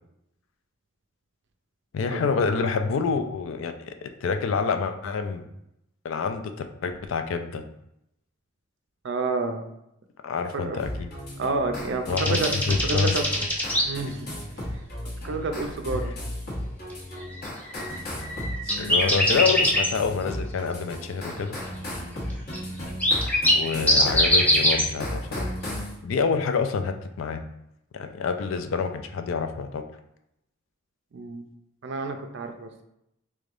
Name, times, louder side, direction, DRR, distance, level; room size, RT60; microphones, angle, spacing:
voice 1, 1.9-5.5 6.0-7.6 10.2-11.1 12.1-12.4 12.7-13.1 18.6-21.6 23.5-25.5 26.0-27.4 27.9-29.8, left 5 dB, 70° left, 7 dB, 0.3 m, -27 dB
voice 2, 9.0-9.6 10.5-10.8 11.4-13.3 13.8-14.3 15.2-16.1 31.1-31.5 31.8-32.8, right 3 dB, 55° right, 6 dB, 0.4 m, -29 dB
sound 1, 10.8-25.9, left 1 dB, 45° left, 0.9 m, -35 dB
sound 2, 12.2-13.8 17.2-17.3 17.6-19.9 22.5-22.6 22.9-24.8, equal, 5° left, 0.5 m, -22 dB
3.6 x 3.3 x 2.5 m, 0.81 s
head